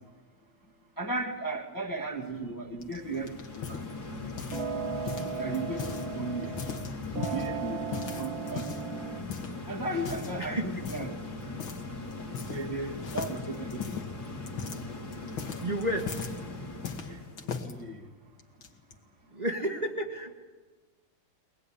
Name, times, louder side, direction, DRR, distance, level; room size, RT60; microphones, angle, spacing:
voice 1, 1.0-3.8 5.4-6.5 7.3-8.7 9.1-9.2 9.7-11.1 12.5-14.0 17.1-17.2 17.6-18.0, right 2 dB, 10° left, 2 dB, 1.4 m, -35 dB
sound 1, 2.8-4.8 5.1-6.1 6.4-7.5 7.9-8.9 9.3-9.6 10.0-10.4 10.8-11.2 11.6-11.8 12.1-12.8 13.0-16.4 16.8-17.7 18.4-18.9, left 6 dB, 80° left, 2.4 m, -38 dB
sound 2, 2.9-17.5, left 2 dB, 50° left, 3.6 m, -40 dB
sound 3, 4.5-6.9 7.2-9.2, right 6 dB, 90° right, 2.0 m, -37 dB
voice 2, 10.4-10.7 15.6-16.2 19.3-20.3, right 1 dB, 20° right, 1 dB, 1.6 m, -31 dB
23.0 x 19.5 x 10.0 m, 1.3 s
omnidirectional pair, 2.1 m